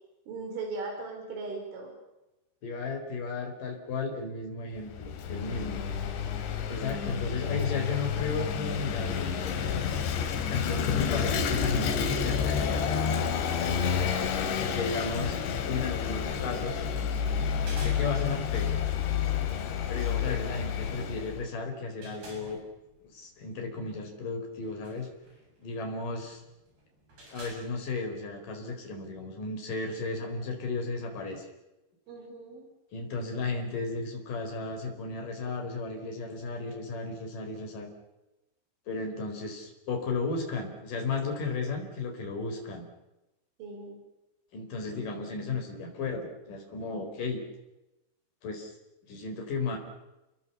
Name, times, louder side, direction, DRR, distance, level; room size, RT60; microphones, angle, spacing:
voice 1, 0.3-2.0 14.4-15.0 20.2-20.4 32.1-32.7 43.6-44.0, right 3 dB, 80° right, 2 dB, 7.2 m, -39 dB
voice 2, 2.6-5.8 6.7-9.4 10.4-13.8 14.6-16.8 17.8-18.8 19.9-22.6 23.0-25.1 25.6-26.4 27.3-31.5 32.9-37.9 38.9-42.8 44.5-47.4 48.4-48.7 49.1-49.8, left 4 dB, 45° left, 4 dB, 5.9 m, -34 dB
Vehicle / Engine, 4.8-21.4, left 7 dB, 75° left, 4.3 m, -30 dB
sound 1, 21.0-28.8, right 2 dB, 50° right, 9.7 m, -54 dB
30.0 x 21.5 x 7.2 m, 0.97 s
omnidirectional pair, 5.5 m